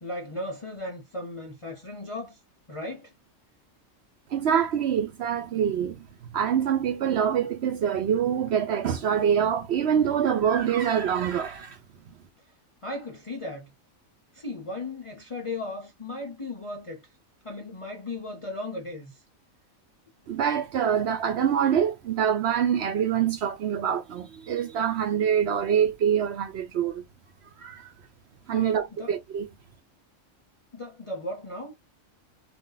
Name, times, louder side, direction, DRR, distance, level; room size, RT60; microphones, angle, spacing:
voice 1, 0.0-2.4 2.7-3.1 12.8-13.7 14.3-17.1 17.4-19.2 28.5-29.1 30.7-31.7, left 2 dB, 45° left, 0.4 m, -36 dB
voice 2, 4.3-6.0 6.3-11.8 20.3-27.0 27.6-27.9 28.5-29.5, right 8 dB, 65° right, 0.7 m, -25 dB
2.6 x 2.2 x 3.7 m
omnidirectional pair, 1.4 m